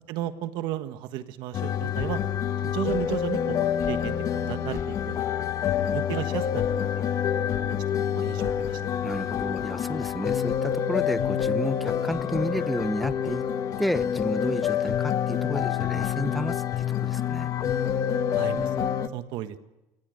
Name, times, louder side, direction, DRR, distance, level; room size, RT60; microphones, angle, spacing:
voice 1, 0.1-2.2 2.6-5.4 5.8-6.6 7.0-7.2 8.1-9.1 18.3-19.6, right 12 dB, 65° right, 9 dB, 1.5 m, -34 dB
sound 1, 1.5-19.1, left 9 dB, 40° left, 1.4 m, -27 dB
voice 2, 9.0-13.4 13.8-17.5, equal, ahead, 14 dB, 0.7 m, -31 dB
27.5 x 19.0 x 7.9 m, 0.98 s
cardioid pair, 135°, 8 cm